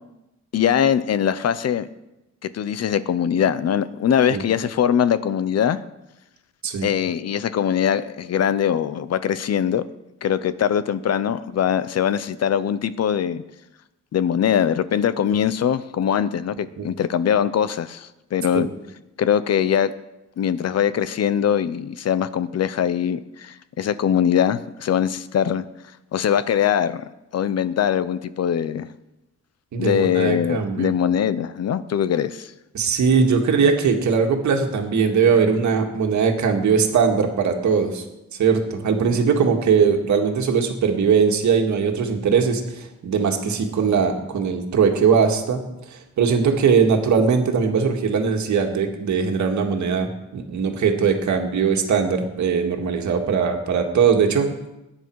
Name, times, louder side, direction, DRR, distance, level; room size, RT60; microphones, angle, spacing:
voice 1, 0.5-1.9 2.4-5.8 6.8-9.8 10.2-13.4 14.1-18.7 19.2-19.9 20.4-25.7 26.1-28.9 29.8-32.5, left 9 dB, 60° left, 15 dB, 0.7 m, -22 dB
voice 2, 29.7-30.9 32.7-38.0 38.4-45.6 45.9-54.7, right 6 dB, 75° right, 3 dB, 2.0 m, -20 dB
20.5 x 9.9 x 4.7 m, 0.94 s
wide cardioid pair, 150°, 29 cm